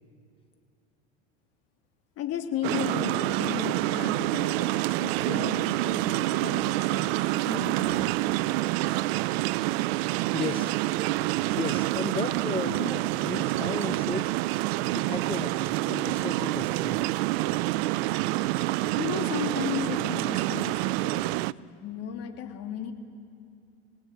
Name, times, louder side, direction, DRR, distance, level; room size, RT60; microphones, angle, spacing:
voice 1, 2.2-8.1 18.5-18.7 19.0-21.4 21.8-22.9, left 9 dB, 50° left, 4 dB, 3.1 m, -35 dB
sound 1, 2.6-21.5, right 18 dB, 70° right, 0.6 m, -27 dB
voice 2, 10.3-10.7 11.5-14.3 14.9-17.0 21.6-21.8, left 5 dB, 15° left, 9 dB, 0.9 m, -35 dB
26.5 x 19.5 x 9.3 m, 2.6 s
supercardioid pair, 105°, 32 cm